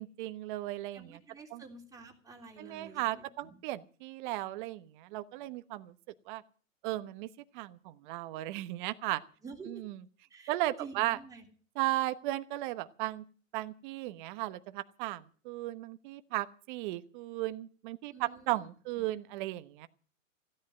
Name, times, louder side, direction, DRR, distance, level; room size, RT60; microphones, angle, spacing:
voice 1, 0.0-1.2 1.5-1.6 2.6-5.9 6.3-6.4 6.8-7.3 7.5-9.2 9.7-10.0 10.5-11.2 11.8-13.2 13.5-19.9, right 17 dB, 40° right, 12 dB, 1.1 m, -36 dB
voice 2, 0.9-3.5 9.4-9.8 10.3-11.5 18.1-18.6, right 4 dB, 10° right, 0 dB, 3.3 m, -49 dB
16.0 x 10.5 x 7.6 m, 0.42 s
hypercardioid pair, 135°, 40 cm